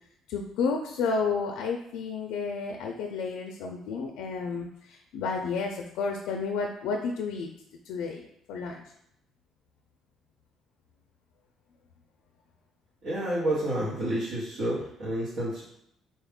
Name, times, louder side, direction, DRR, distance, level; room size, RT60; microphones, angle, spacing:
voice 1, 0.3-7.5 7.9-8.8, left 4 dB, 90° left, 2 dB, 0.4 m, -31 dB
voice 2, 13.0-15.6, right 1 dB, 60° right, -8 dB, 1.1 m, -29 dB
4.1 x 2.3 x 3.5 m, 0.76 s
cardioid pair, 135°, 0 cm